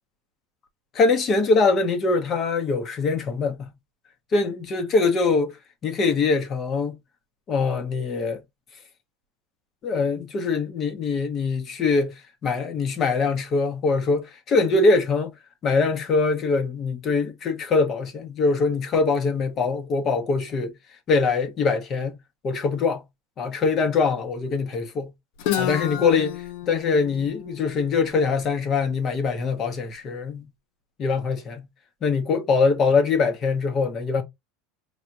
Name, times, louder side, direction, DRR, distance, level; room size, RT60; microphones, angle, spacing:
voice 1, 0.9-3.7 4.3-5.5 5.8-6.9 7.5-8.4 9.8-12.1 12.4-15.3 15.6-20.7 21.1-22.1 22.4-23.0 23.4-25.1 25.6-30.5 31.0-31.7 32.0-34.2, left 4 dB, 35° left, 0.9 m, -23 dB
Guitar, 25.4-29.2, left 11 dB, 65° left, 0.6 m, -31 dB
4.5 x 2.4 x 2.6 m
supercardioid pair, 140°, 0 cm